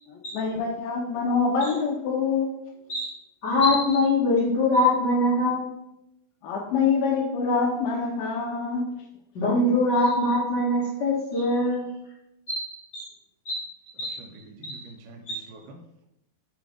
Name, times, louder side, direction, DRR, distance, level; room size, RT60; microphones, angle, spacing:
voice 1, 0.3-2.5 6.4-8.9, left 5 dB, 80° left, -1 dB, 2.5 m, -25 dB
voice 2, 3.4-5.7 9.3-11.9 12.5-13.0 13.4-13.6 14.0-14.2 14.6-14.8 15.3-15.4, left 2 dB, 55° left, -6 dB, 1.1 m, -23 dB
voice 3, 14.2-16.1, right 2 dB, 90° right, 4 dB, 2.8 m, -46 dB
7.4 x 3.1 x 5.0 m, 0.84 s
omnidirectional pair, 4.4 m